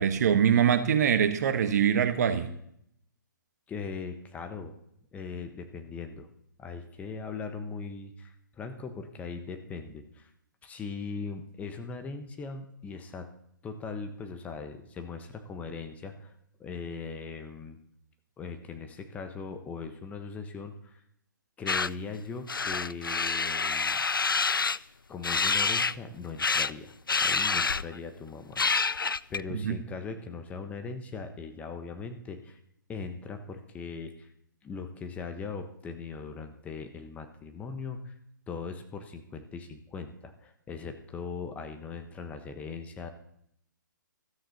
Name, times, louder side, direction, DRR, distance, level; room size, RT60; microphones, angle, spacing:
voice 1, 0.0-2.5 29.5-29.8, right 8 dB, 50° right, 9 dB, 1.5 m, -24 dB
voice 2, 3.7-4.7 5.1-6.3 6.6-10.3 10.6-13.3 13.6-16.3 16.6-17.8 18.4-21.0 21.6-24.0 25.1-26.9 27.2-29.0 29.3-32.6 32.9-34.3 34.6-38.1 38.5-43.1, left 4 dB, 15° left, 6 dB, 1.2 m, -40 dB
sound 1, 21.7-21.9 22.5-24.8 25.2-26.0 26.4-26.7 27.1-28.0 28.6-29.4, left 4 dB, 85° left, 0.4 m, -27 dB
15.5 x 13.5 x 4.1 m, 0.70 s
figure-of-eight pair, 130°, 11 cm